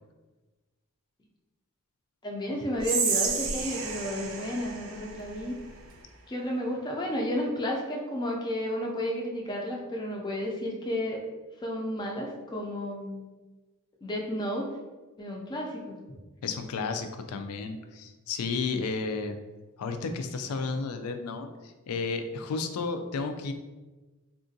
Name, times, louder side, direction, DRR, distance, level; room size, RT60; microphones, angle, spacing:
voice 1, 2.2-5.6 6.3-11.2 11.6-13.2 14.0-14.7 15.2-16.2, equal, 20° left, -1 dB, 0.3 m, -32 dB
Whispering, 2.8-6.0, right 5 dB, 65° right, 0.5 m, -31 dB
voice 2, 16.4-19.4 19.8-21.5 21.9-23.5, left 4 dB, 90° left, 7 dB, 0.4 m, -32 dB
3.6 x 2.4 x 2.6 m, 1.2 s
head